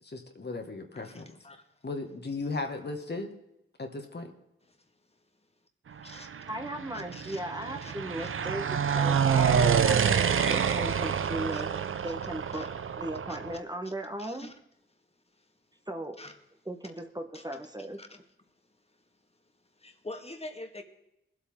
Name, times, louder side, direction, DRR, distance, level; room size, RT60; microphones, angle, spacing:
voice 1, 0.0-1.3 1.8-3.3 3.8-4.3, left 3 dB, 55° left, 3 dB, 1.8 m, -36 dB
voice 2, 0.9-1.7 4.7-4.8 6.0-6.3 6.9-7.4 7.8-7.9 8.2-8.3 9.6-9.7 10.3-11.0 11.5-11.6 12.5-12.7 13.3-13.4 14.2-14.5 15.4-15.5 16.2-16.4 17.3-17.4 18.0-18.2 19.8-20.8, left 2 dB, 30° left, 6 dB, 1.8 m, -45 dB
sound 1, 6.1-13.6, right 7 dB, 75° right, 0.6 m, -27 dB
voice 3, 6.5-14.5 15.9-16.2 16.6-18.0, right 1 dB, 20° right, 5 dB, 1.3 m, -37 dB
20.5 x 8.3 x 3.7 m, 0.83 s
cardioid pair, 50°, 21 cm